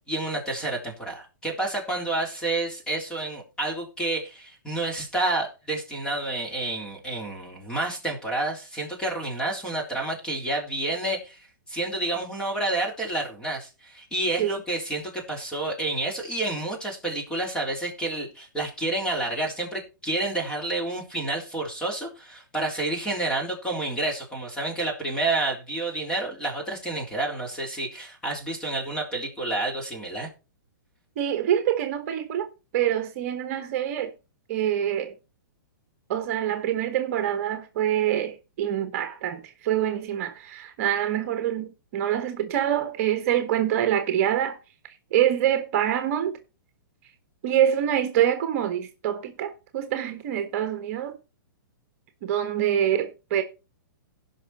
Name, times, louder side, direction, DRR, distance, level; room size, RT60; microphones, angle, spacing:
voice 1, 0.1-11.4 11.7-30.3, right 2 dB, 5° left, 3.5 m, -29 dB
voice 2, 31.2-32.5 32.7-34.1 34.5-35.2 36.1-44.6 45.1-46.4 47.4-51.2 52.2-53.4, right 10 dB, 40° right, 1.3 m, -25 dB
17.0 x 5.7 x 4.2 m
hypercardioid pair, 150°, 11 cm